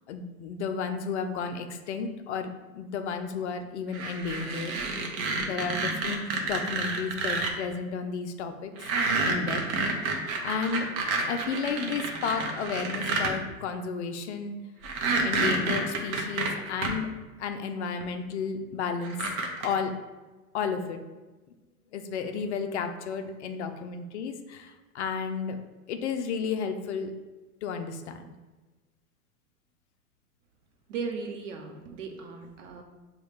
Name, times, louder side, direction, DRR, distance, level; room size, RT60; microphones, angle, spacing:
voice 1, 0.1-4.7 5.5-8.7 9.2-9.6 10.2-10.9 11.3-14.6 15.2-17.1 17.4-19.2 19.6-19.9 20.5-21.0 21.9-25.6 25.9-27.1 27.6-28.2, left 5 dB, 50° left, 7 dB, 0.5 m, -32 dB
sound 1, 3.9-7.5 8.8-13.3 14.8-16.9 18.0-18.1 19.0-19.7, right 3 dB, 30° right, 0.6 m, -29 dB
voice 2, 30.9-32.8, right 5 dB, 55° right, 3 dB, 0.9 m, -37 dB
6.2 x 2.4 x 3.2 m, 1.2 s
figure-of-eight pair, 105°, 44 cm